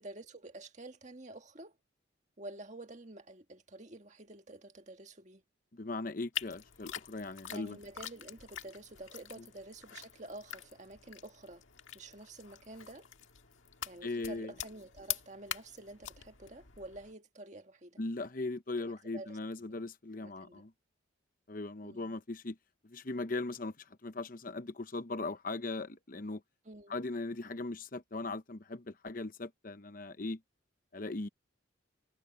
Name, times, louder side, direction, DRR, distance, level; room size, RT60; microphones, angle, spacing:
voice 1, 0.0-1.7 2.4-5.4 7.5-11.6 11.9-13.1 13.8-18.0 18.8-19.4 19.6-19.8 20.2-20.6 21.8-22.1 26.6-26.9, right 2 dB, 35° right, 1.7 m, -49 dB
voice 2, 5.7-7.8 9.4-9.5 14.0-14.5 18.0-20.7 21.5-22.6 22.8-26.4 26.9-30.4 30.9-31.3, left 2 dB, 45° left, 0.9 m, -39 dB
sound 1, 6.3-17.1, left 11 dB, 85° left, 1.7 m, -45 dB
head